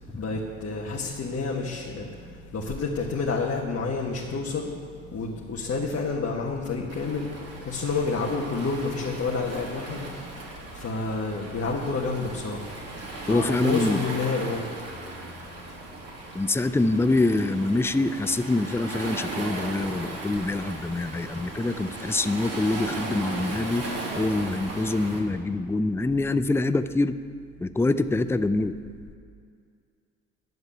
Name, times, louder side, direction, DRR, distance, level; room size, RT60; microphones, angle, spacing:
voice 1, 0.1-2.1 2.5-4.7 5.1-7.3 7.7-10.1 10.8-12.6 13.3-14.6, left 4 dB, 40° left, -2 dB, 1.8 m, -29 dB
Waves surf, 6.9-25.2, right 2 dB, 40° right, 3.2 m, -37 dB
voice 2, 13.3-14.1 16.3-23.9 24.2-27.1 27.6-28.8, left 2 dB, 5° left, 11 dB, 0.6 m, -25 dB
11.0 x 7.8 x 8.1 m, 2.2 s
hypercardioid pair, 55°, 37 cm